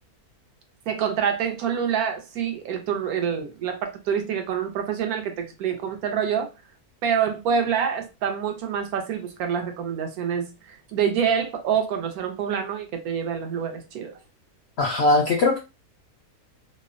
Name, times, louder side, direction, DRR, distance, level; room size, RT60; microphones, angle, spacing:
voice 1, 0.9-6.5 7.0-14.2, right 7 dB, 80° right, 1.1 m, -26 dB
voice 2, 14.8-15.6, left 2 dB, 70° left, 0.6 m, -20 dB
2.8 x 2.0 x 2.4 m
omnidirectional pair, 1.6 m